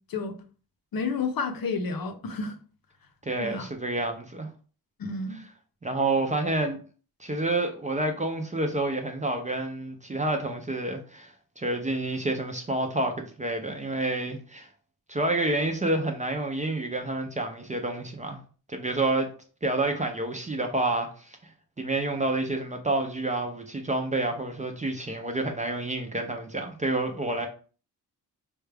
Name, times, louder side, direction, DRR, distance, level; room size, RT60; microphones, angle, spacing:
voice 1, 0.9-2.5 3.4-3.7 5.0-5.4, left 4 dB, 60° left, 0.6 m, -30 dB
voice 2, 3.2-4.5 5.3-5.4 5.8-6.8 7.2-14.7 15.1-18.4 18.7-19.3 19.6-21.4 21.8-27.5, right 2 dB, 20° right, 0.4 m, -29 dB
4.6 x 2.2 x 3.3 m
wide cardioid pair, 160°, 39 cm